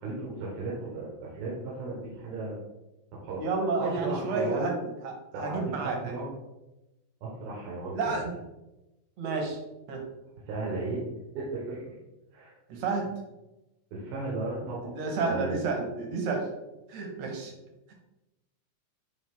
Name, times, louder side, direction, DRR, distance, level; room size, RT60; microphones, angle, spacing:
voice 1, 0.0-2.6 3.2-4.7 5.3-6.3 7.2-8.1 10.5-11.0 11.3-11.9 12.3-12.5 13.9-14.9 15.2-15.6, right 3 dB, 85° right, -5 dB, 3.1 m, -35 dB
voice 2, 3.4-4.8 5.0-6.2 7.9-8.4 9.2-9.6 9.9-10.0 12.7-13.1 14.8-16.5 16.9-17.5, right 4 dB, 60° right, 2 dB, 1.9 m, -30 dB
9.0 x 3.4 x 3.6 m, 0.99 s
omnidirectional pair, 4.1 m